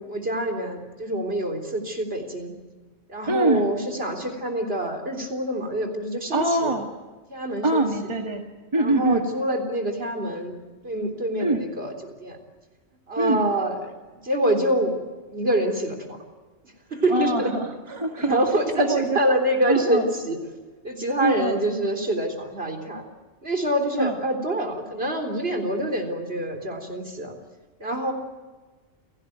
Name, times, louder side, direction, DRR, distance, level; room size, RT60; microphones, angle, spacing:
voice 1, 0.0-2.5 3.1-6.7 7.3-7.8 8.7-10.5 10.8-12.4 13.1-13.9 14.2-15.0 15.3-16.2 16.9-17.5 18.2-20.4 20.8-23.0 23.4-27.4 27.8-28.1, right 1 dB, 50° right, 3 dB, 4.0 m, -26 dB
voice 2, 3.3-3.7 6.3-6.9 7.6-8.4 8.7-9.3 11.4-11.7 13.2-13.5 17.1-18.4 18.8-19.2 19.7-20.1 21.2-21.6 24.0-24.2, right 2 dB, 25° right, 2 dB, 1.9 m, -24 dB
29.0 x 17.5 x 9.4 m, 1.3 s
omnidirectional pair, 1.3 m